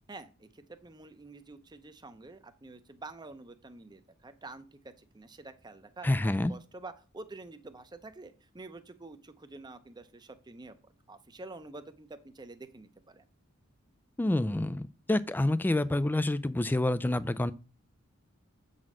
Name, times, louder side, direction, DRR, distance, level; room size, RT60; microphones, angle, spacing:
voice 1, 0.1-13.2, right 3 dB, 20° right, 0.6 m, -48 dB
voice 2, 6.0-6.5 14.2-17.5, left 1 dB, 10° left, 0.3 m, -28 dB
7.6 x 4.2 x 6.0 m
head